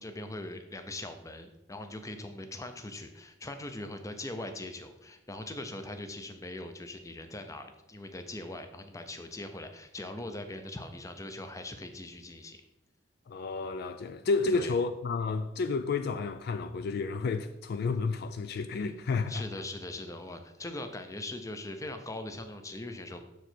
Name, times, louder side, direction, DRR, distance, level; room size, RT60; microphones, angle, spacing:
voice 1, 0.0-12.6 14.5-14.7 19.3-23.2, left 2 dB, 15° left, 0.6 m, -41 dB
voice 2, 13.3-19.4, left 4 dB, 55° left, 0.3 m, -31 dB
6.6 x 4.7 x 4.4 m
head